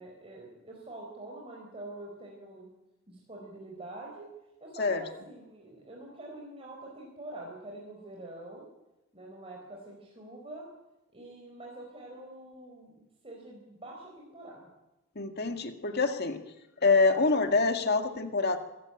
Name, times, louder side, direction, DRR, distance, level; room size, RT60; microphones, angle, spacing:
voice 1, 0.0-2.7 3.1-4.3 4.6-8.7 9.1-10.7 11.1-14.7, right 1 dB, 25° right, -2 dB, 4.5 m, -45 dB
voice 2, 15.2-16.4 16.8-18.6, left 3 dB, 45° left, 6 dB, 2.0 m, -26 dB
25.0 x 15.0 x 9.0 m, 0.99 s
head